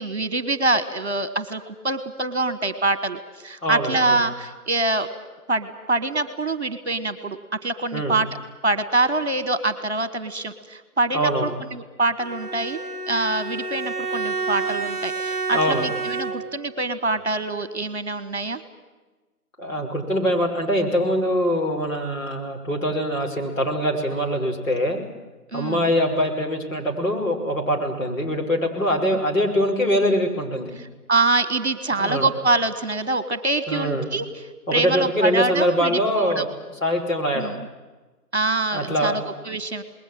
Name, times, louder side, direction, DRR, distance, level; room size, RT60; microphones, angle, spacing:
voice 1, 0.0-5.1 5.5-8.3 8.6-12.8 13.1-18.6 25.5-25.8 31.1-34.4 34.7-36.4 37.3-37.6 38.3-39.8, right 2 dB, 45° right, 13 dB, 1.5 m, -25 dB
voice 2, 3.6-4.2 7.9-8.2 11.1-11.5 15.5-15.9 19.6-25.0 25.5-30.7 32.0-32.3 33.7-34.1 34.7-36.5 36.8-37.5 38.7-39.2, equal, 55° left, 2 dB, 5.4 m, -23 dB
Bowed string instrument, 12.2-16.7, right 4 dB, ahead, 1.8 m, -29 dB
27.5 x 20.5 x 7.6 m, 1.2 s
figure-of-eight pair, 170°, 47 cm